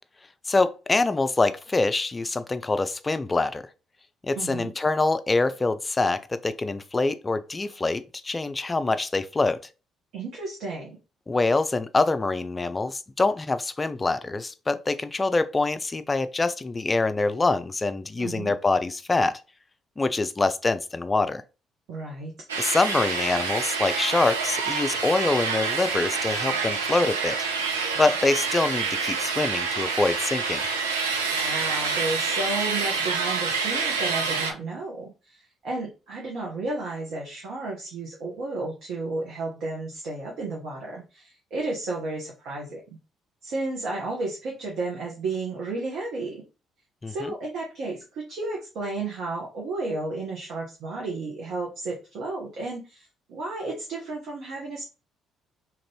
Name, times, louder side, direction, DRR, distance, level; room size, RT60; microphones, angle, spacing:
voice 1, 0.5-3.6 4.2-9.6 11.3-19.4 20.0-21.4 22.6-27.4 28.0-30.6 47.0-47.3, left 3 dB, 25° left, 0.3 m, -25 dB
voice 2, 4.4-4.7 10.1-11.0 18.2-18.5 21.9-22.3 31.3-42.8 43.4-46.4 47.1-54.8, right 2 dB, 60° right, 0.8 m, -33 dB
sound 1, 22.5-34.5, right 5 dB, 80° right, 0.4 m, -27 dB
2.9 x 2.5 x 3.1 m
figure-of-eight pair, 45°, 0 cm